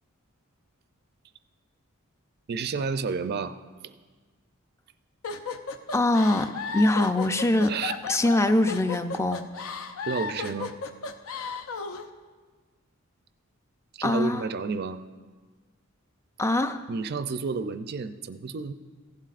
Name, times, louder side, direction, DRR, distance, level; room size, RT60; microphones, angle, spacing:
voice 1, 2.5-3.6 3.8-3.9 7.7-7.9 10.0-10.7 13.9-15.0 16.9-18.7, right 5 dB, 50° right, 12 dB, 0.4 m, -31 dB
sound 1, 5.2-12.1, left 4 dB, 75° left, 0.6 m, -34 dB
voice 2, 5.9-7.7 8.1-9.5 14.0-14.4 16.4-16.8, left 1 dB, 15° left, 9 dB, 0.4 m, -23 dB
16.0 x 11.5 x 2.5 m, 1.4 s
head